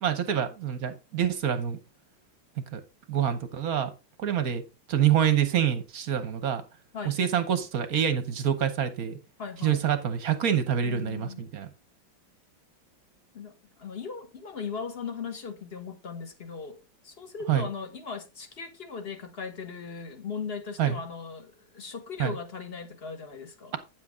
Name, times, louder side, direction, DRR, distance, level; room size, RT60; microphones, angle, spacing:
voice 1, 0.0-1.8 2.7-2.8 3.1-3.9 4.2-4.6 4.9-6.6 7.0-9.2 9.6-11.7 17.5-17.7 20.8-21.0 22.2-22.4, right 9 dB, 55° right, 1.1 m, -26 dB
voice 2, 9.4-9.8 10.8-11.4 13.3-16.8 17.0-23.7, left 5 dB, 35° left, 1.4 m, -38 dB
9.5 x 7.5 x 3.6 m
omnidirectional pair, 2.2 m